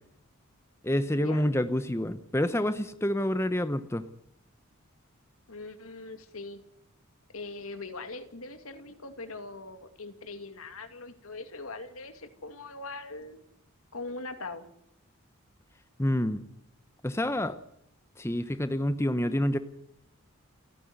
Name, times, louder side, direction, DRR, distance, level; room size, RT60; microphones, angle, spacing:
voice 1, 0.8-4.0 16.0-16.4 17.0-17.6 18.2-19.6, left 1 dB, 10° left, 11 dB, 0.8 m, -28 dB
voice 2, 5.5-6.6 7.3-13.4 13.9-14.7, left 3 dB, 75° left, 9 dB, 2.5 m, -41 dB
29.5 x 10.0 x 9.6 m, 0.77 s
head